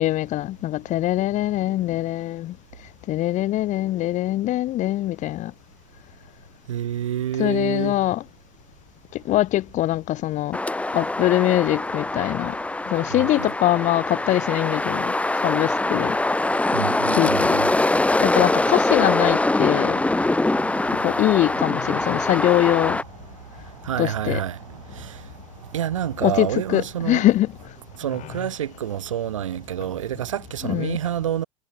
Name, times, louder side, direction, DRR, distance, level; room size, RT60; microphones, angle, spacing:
voice 1, 0.0-2.5 3.1-5.5 7.4-8.2 9.3-10.6 10.9-12.5 12.9-15.1 15.4-16.2 17.1-17.6 18.2-20.0 21.0-23.0 24.0-24.4 26.2-27.5 30.6-31.0, left 15 dB, 50° left, 7.6 m, -22 dB
voice 2, 6.7-8.0 13.1-13.5 16.7-17.7 18.6-18.7 19.7-20.0 20.6-21.0 22.0-22.3 23.5-25.3 25.7-27.2 28.0-31.4, right 10 dB, 75° right, 7.3 m, -29 dB
sound 1, 10.5-23.0, left 2 dB, 10° left, 1.9 m, -23 dB
figure-of-eight pair, 75°, 16 cm